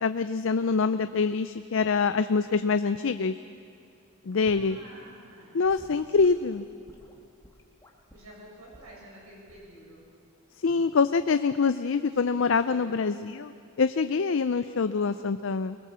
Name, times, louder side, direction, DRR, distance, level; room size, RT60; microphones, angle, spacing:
voice 1, 0.0-3.3 4.3-4.8 5.5-6.6 10.6-13.5 13.8-15.8, left 4 dB, 60° left, 11 dB, 0.5 m, -25 dB
voice 2, 4.3-6.6 8.1-10.1 12.1-13.1, right 1 dB, 90° right, -3 dB, 7.5 m, -51 dB
Gurgling / Sink (filling or washing) / Liquid, 4.5-4.7 5.6-8.3 8.7-9.0 9.5-9.8 10.7-10.9, equal, 15° left, 1.8 m, -53 dB
23.0 x 21.0 x 7.5 m, 2.4 s
head